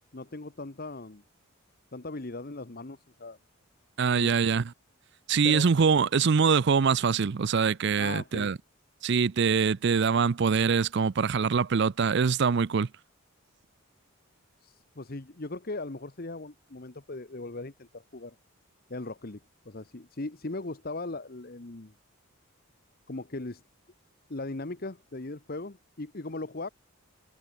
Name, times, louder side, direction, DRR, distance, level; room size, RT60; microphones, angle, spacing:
voice 1, 0.1-1.2 1.9-3.4 4.1-4.3 5.4-5.7 8.0-8.5 14.6-18.4 18.9-21.9 23.1-23.6 24.3-26.7, left 2 dB, 45° left, 1.1 m, -38 dB
voice 2, 4.0-4.7 5.3-8.6 9.0-12.9, right 5 dB, 55° right, 0.5 m, -24 dB
head